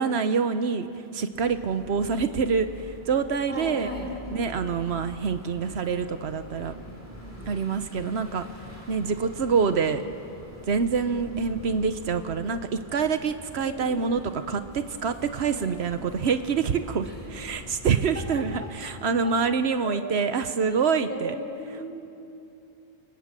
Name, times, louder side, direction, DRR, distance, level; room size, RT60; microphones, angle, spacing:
voice 1, 0.0-3.9 4.3-6.7 7.5-8.5 8.9-10.0 10.7-21.4, right 5 dB, 85° right, 9 dB, 1.2 m, -26 dB
sound 1, 1.3-18.8, left 1 dB, 15° right, 4.2 m, -46 dB
voice 2, 3.5-4.1 4.9-5.0 6.6-8.1 9.2-9.3 9.5-9.8 11.1-11.7 13.6-14.2 15.5-15.7 17.0-17.1 19.8-20.0 20.7-20.8 21.1-21.9, equal, 10° left, -1 dB, 5.4 m, -38 dB
29.0 x 25.0 x 7.5 m, 2.7 s
omnidirectional pair, 1.1 m